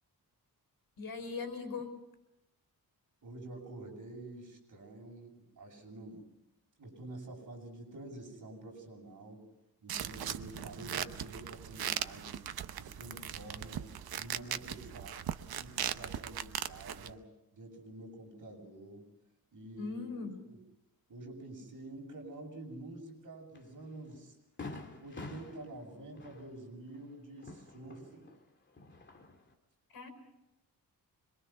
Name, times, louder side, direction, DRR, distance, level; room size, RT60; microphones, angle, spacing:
voice 1, 1.0-2.0 19.8-20.4 29.9-30.1, left 4 dB, 70° left, 5 dB, 5.1 m, -39 dB
voice 2, 3.2-6.3 6.8-9.4 9.8-12.4 12.8-13.9 14.2-17.2 17.5-19.1 19.5-20.0 20.4-20.6 21.1-24.4 25.0-28.3, right 2 dB, 60° right, 0 dB, 7.7 m, -48 dB
sound 1, 9.9-17.1, right 10 dB, 80° right, 1.0 m, -39 dB
Fireworks, 23.5-23.7 24.1-24.2 24.6-28.4 28.7-29.5, left 3 dB, 30° left, 2.7 m, -48 dB
26.5 x 23.0 x 5.9 m, 0.92 s
wide cardioid pair, 140°, 36 cm